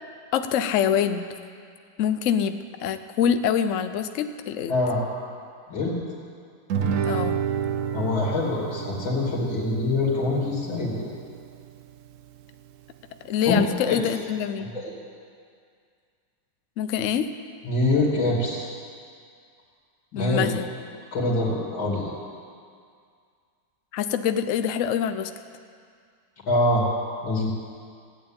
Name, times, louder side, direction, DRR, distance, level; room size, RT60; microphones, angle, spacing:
voice 1, 0.3-1.2 2.0-4.7 7.0-7.4 13.2-14.7 16.8-17.3 20.1-20.7 23.9-25.3, left 8 dB, 60° left, 9 dB, 0.8 m, -25 dB
voice 2, 4.7-5.0 5.7-6.0 7.9-11.1 13.4-13.6 13.9-14.0 14.6-14.9 17.6-18.7 20.1-20.5 21.1-22.1 26.5-26.8 27.2-27.5, left 2 dB, 85° left, -5 dB, 3.3 m, -24 dB
Guitar, 6.7-11.8, right 7 dB, 65° right, 0.7 m, -30 dB
15.5 x 8.9 x 8.8 m, 2.2 s
omnidirectional pair, 2.1 m